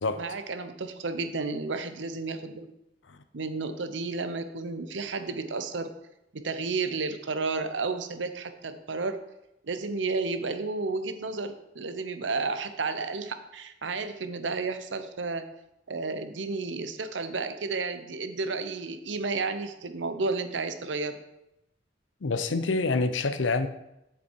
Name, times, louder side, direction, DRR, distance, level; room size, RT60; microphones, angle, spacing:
voice 1, 0.2-2.7 3.3-5.9 6.3-9.2 9.6-15.5 15.9-21.2, right 3 dB, 75° right, 10 dB, 0.8 m, -32 dB
voice 2, 22.2-23.7, left 3 dB, 90° left, 11 dB, 0.7 m, -27 dB
7.6 x 7.2 x 4.6 m, 0.87 s
head